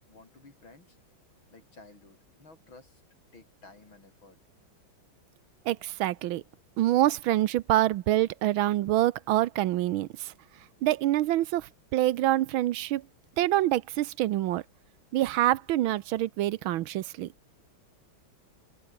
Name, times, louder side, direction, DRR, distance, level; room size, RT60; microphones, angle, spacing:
voice 1, 0.1-1.0 1.5-3.0 3.3-4.4, left 3 dB, 75° left, 6.6 m, -54 dB
voice 2, 5.7-6.4 6.8-10.3 10.8-13.0 13.4-14.6 15.1-17.3, right 14 dB, 80° right, 1.5 m, -26 dB
open air
omnidirectional pair, 2.2 m